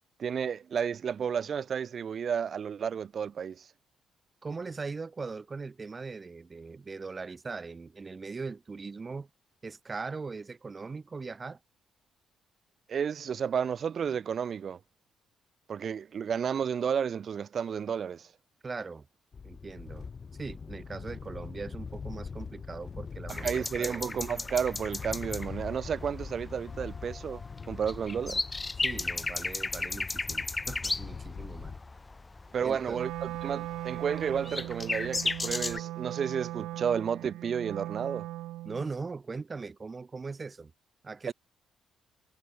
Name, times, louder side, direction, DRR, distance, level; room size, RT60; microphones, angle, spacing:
voice 1, 0.2-3.6 12.9-14.8 15.7-18.3 23.3-27.4 27.7-28.4 32.5-38.3 41.3-41.4, right 7 dB, 55° right, 2.5 m, -32 dB
voice 2, 4.4-9.3 9.6-11.6 18.6-19.1 19.4-20.1 20.4-24.0 28.8-31.7 32.6-33.0 38.6-40.7 41.0-41.3, right 4 dB, 35° right, 2.2 m, -40 dB
sound 1, 19.3-31.8, left 5 dB, 45° left, 4.1 m, -43 dB
sound 2, 23.3-35.8, left 3 dB, 25° left, 4.7 m, -36 dB
Wind instrument woodwind instrument, 32.9-38.9, right 16 dB, 70° right, 2.5 m, -39 dB
hypercardioid pair, 45°, 0 cm